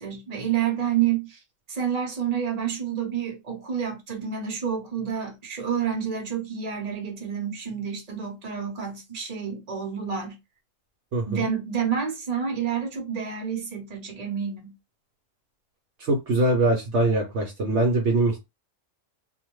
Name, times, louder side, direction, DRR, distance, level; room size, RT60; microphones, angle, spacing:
voice 1, 0.0-1.4 1.7-10.4 11.3-14.8, right 8 dB, 35° right, 0.9 m, -29 dB
voice 2, 11.1-11.4 16.0-18.4, right 2 dB, 65° right, 0.9 m, -23 dB
2.6 x 2.1 x 3.0 m
omnidirectional pair, 1.4 m